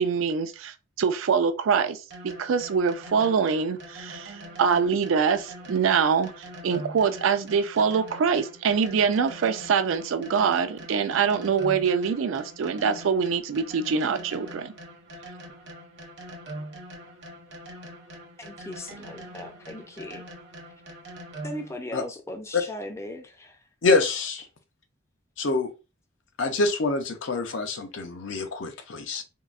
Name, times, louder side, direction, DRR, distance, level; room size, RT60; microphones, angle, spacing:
voice 1, 0.0-2.0 2.4-14.7, right 6 dB, 85° right, 0.4 m, -24 dB
sound 1, 2.1-21.8, right 1 dB, 60° right, 0.7 m, -43 dB
voice 2, 18.4-20.2 21.4-23.6, left 1 dB, 15° left, 0.4 m, -38 dB
voice 3, 23.8-24.4 25.4-25.7 26.4-29.2, left 3 dB, 70° left, 0.5 m, -25 dB
3.7 x 2.0 x 2.4 m
head